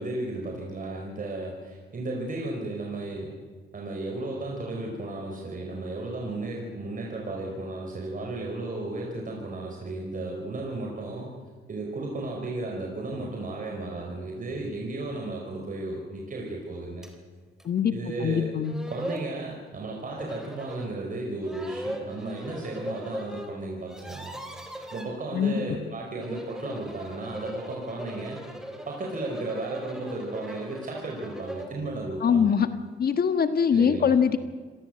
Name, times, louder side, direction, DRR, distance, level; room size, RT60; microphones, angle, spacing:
voice 1, 0.0-3.3 3.7-11.3 11.7-17.1 17.9-18.6 18.9-24.4 24.9-28.5 28.9-32.6 33.7-34.1, right 2 dB, 45° right, 0 dB, 5.1 m, -34 dB
sound 1, 17.0-17.1 17.6-17.7 18.3-18.4 18.6-19.3 20.2-20.9 21.4-23.5 23.8-25.1 26.1-31.8, equal, 5° right, 3.8 m, -39 dB
voice 2, 18.2-18.8 25.3-25.6 32.2-32.7 33.0-34.4, left 7 dB, 50° left, 9 dB, 1.6 m, -22 dB
26.0 x 18.0 x 7.9 m, 1.4 s
cardioid pair, 90°, 20 cm